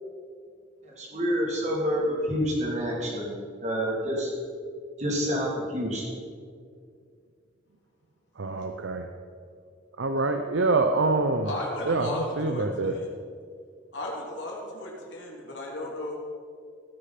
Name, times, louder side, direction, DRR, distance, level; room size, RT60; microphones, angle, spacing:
voice 1, 1.0-4.3 5.0-6.1, equal, 35° right, -3 dB, 3.0 m, -28 dB
voice 2, 8.4-9.1 10.0-11.5 11.9-13.0, right 3 dB, 80° right, 6 dB, 0.7 m, -25 dB
voice 3, 11.4-13.1 13.9-16.1, left 1 dB, 75° left, -2 dB, 3.2 m, -35 dB
17.0 x 6.7 x 5.9 m, 2.2 s
head